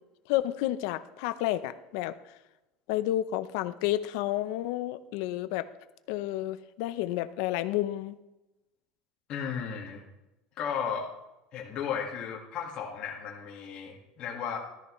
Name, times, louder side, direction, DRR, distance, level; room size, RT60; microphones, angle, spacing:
voice 1, 0.3-2.2 2.9-5.7 6.1-8.2, left 14 dB, 65° left, 13 dB, 0.6 m, -30 dB
voice 2, 9.3-10.0 10.6-11.1 11.5-14.6, left 7 dB, 35° left, -2 dB, 1.8 m, -34 dB
13.5 x 13.0 x 3.1 m, 0.99 s
cardioid pair, 170°, 3 cm